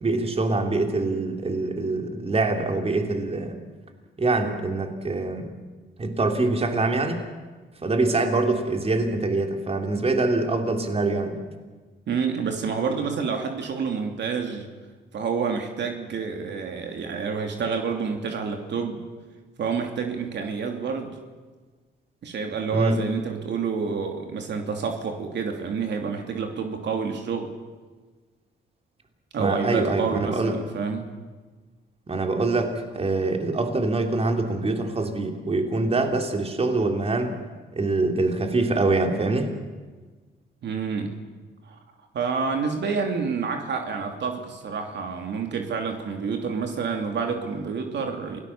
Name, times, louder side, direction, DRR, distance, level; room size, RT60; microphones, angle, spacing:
voice 1, 0.0-3.6 4.2-5.5 6.0-7.2 7.8-11.4 22.7-23.0 29.4-30.6 32.1-37.4 37.7-39.5, right 3 dB, 30° right, 4 dB, 3.1 m, -24 dB
voice 2, 12.1-14.7 15.1-19.0 19.6-21.2 22.2-27.5 29.3-31.1 40.6-41.2 41.7-41.8 42.1-48.4, right 5 dB, 65° right, 4 dB, 2.8 m, -28 dB
27.5 x 18.5 x 7.3 m, 1.4 s
cardioid pair, 90°, 20 cm